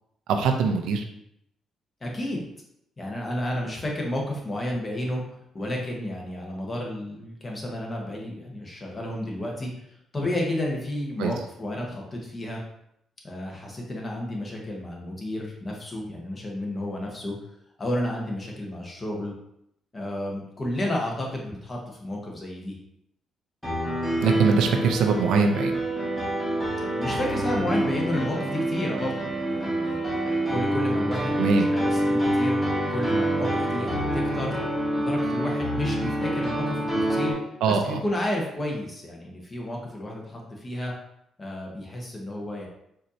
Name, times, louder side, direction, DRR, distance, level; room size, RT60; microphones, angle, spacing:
voice 1, 0.3-1.0 11.2-11.3 24.2-25.7 31.4-31.7 37.6-38.0, right 5 dB, 85° right, 4 dB, 0.4 m, -22 dB
voice 2, 2.0-2.5 3.0-12.6 13.2-17.3 17.8-19.3 19.9-22.8 27.0-30.0 30.5-32.6 32.9-34.6 35.0-37.4 37.7-40.9 41.4-42.7, left 1 dB, 30° left, -1 dB, 1.0 m, -31 dB
Piano, 23.6-37.3, right 1 dB, 5° left, 1.2 m, -26 dB
4.3 x 2.7 x 2.6 m, 0.76 s
cardioid pair, 90°, 0 cm